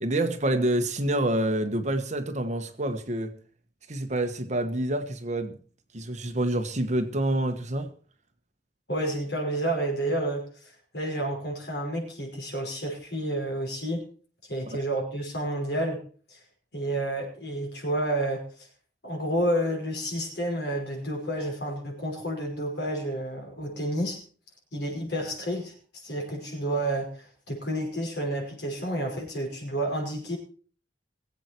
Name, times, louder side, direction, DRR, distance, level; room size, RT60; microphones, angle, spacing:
voice 1, 0.0-3.3 3.9-5.6 5.9-7.9 14.7-14.8, right 1 dB, 40° right, 1.4 m, -27 dB
voice 2, 8.9-10.5 10.9-14.0 14.5-16.0 16.3-16.4 16.7-18.4 19.0-24.2 24.7-25.7 26.0-30.4, right 1 dB, 65° left, 5.4 m, -30 dB
21.0 x 8.2 x 4.6 m
head